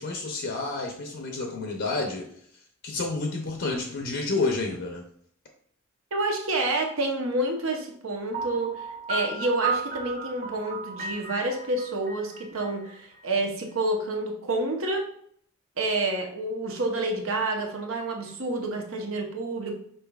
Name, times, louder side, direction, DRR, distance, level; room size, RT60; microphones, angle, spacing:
voice 1, 0.0-2.3 2.8-5.0, left 3 dB, 60° left, 2 dB, 0.6 m, -29 dB
voice 2, 6.1-15.0 15.8-19.7, right 2 dB, 80° right, 2 dB, 0.9 m, -28 dB
Piano, 8.3-13.2, right 4 dB, 40° right, 0.7 m, -34 dB
5.5 x 3.8 x 2.3 m, 0.65 s
head